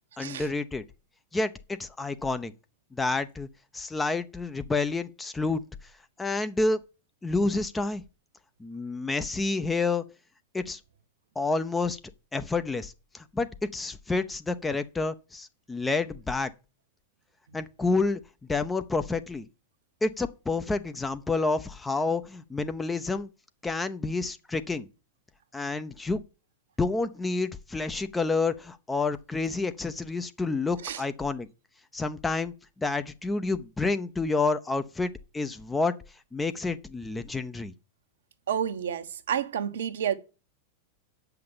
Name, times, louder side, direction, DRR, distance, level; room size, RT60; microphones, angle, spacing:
voice 1, 0.2-0.8 1.3-2.5 2.9-3.5 3.7-5.6 6.2-6.8 7.2-8.0 8.6-10.0 10.5-10.8 11.4-12.0 12.3-16.5 17.5-18.2 18.5-19.5 20.0-23.3 23.6-24.9 25.5-26.2 26.8-31.5 31.9-32.5 32.8-35.9 36.3-37.7, left 3 dB, 10° left, 0.8 m, -29 dB
voice 2, 38.5-40.2, right 9 dB, 60° right, 1.1 m, -30 dB
8.5 x 5.9 x 7.2 m
figure-of-eight pair, 90°, 0 cm